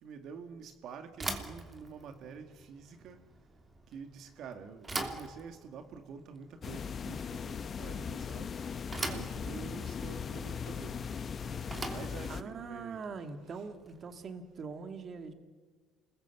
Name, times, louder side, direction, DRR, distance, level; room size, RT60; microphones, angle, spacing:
voice 1, 0.0-3.2 3.9-8.6 9.1-11.0 11.4-13.1 13.5-13.7, right 6 dB, 60° right, 2.0 m, -47 dB
Bicycle / Thump thud, 1.1-14.2, right 2 dB, 20° right, 3.0 m, -43 dB
sound 1, 6.6-12.4, left 6 dB, 35° left, 1.0 m, -39 dB
voice 2, 12.3-15.3, right 5 dB, 40° right, 2.1 m, -42 dB
28.0 x 21.0 x 8.3 m
cardioid pair, 110°, 0 cm